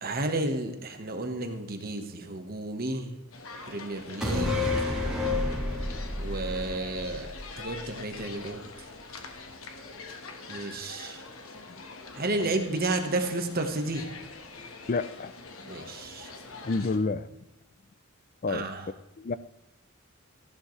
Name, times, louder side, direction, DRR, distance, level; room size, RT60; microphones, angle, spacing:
voice 1, 0.0-3.1 3.7-5.0 6.2-7.3 7.6-8.6 10.5-11.2 12.1-14.0 15.7-16.3 18.5-18.9, right 2 dB, 45° right, 6 dB, 1.3 m, -32 dB
sound 1, 3.3-17.0, left 3 dB, 75° left, 1.4 m, -45 dB
sound 2, 4.2-7.8 8.1-8.2, left 2 dB, 5° right, 3.3 m, -30 dB
voice 2, 14.9-15.3 16.6-17.2 18.4-18.6 19.2-19.4, left 3 dB, 40° left, 16 dB, 0.4 m, -28 dB
14.0 x 11.0 x 3.2 m, 0.91 s
head